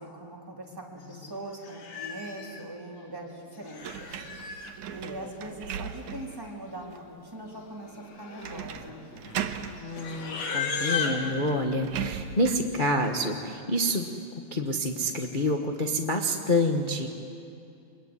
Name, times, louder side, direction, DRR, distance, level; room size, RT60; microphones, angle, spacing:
voice 1, 0.0-4.2 4.9-9.0, right 1 dB, 5° right, -2 dB, 3.3 m, -41 dB
Livestock farm animals working animals, 1.1-1.3 1.6-2.6 3.5-4.7 5.8-5.9 6.1-6.5 6.8-7.1 7.7-11.3, left 5 dB, 60° left, 3.0 m, -35 dB
sound 1, 3.8-6.4 6.9-7.0 8.4-8.9 9.2-9.8 10.8-10.9 11.2-12.7, right 8 dB, 85° right, 2.5 m, -37 dB
voice 2, 9.8-14.1 14.5-17.1, left 1 dB, 85° left, 2 dB, 0.4 m, -28 dB
24.5 x 22.0 x 9.8 m, 2.6 s
omnidirectional pair, 3.4 m